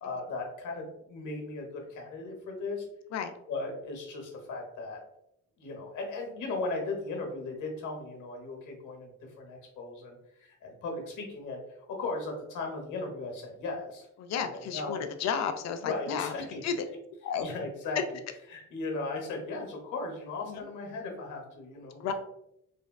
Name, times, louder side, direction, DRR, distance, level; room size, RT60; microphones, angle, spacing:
voice 1, 0.0-2.9 3.5-5.0 5.6-9.1 9.4-11.6 11.9-15.0 15.8-16.6 17.4-18.0 18.5-22.1, left 3 dB, 80° left, 1 dB, 0.9 m, -37 dB
voice 2, 14.2-16.8 17.2-17.5 20.5-20.6 22.0-22.1, left 7 dB, 60° left, 7 dB, 0.4 m, -33 dB
3.3 x 2.3 x 2.2 m, 0.78 s
cardioid pair, 90°, 30 cm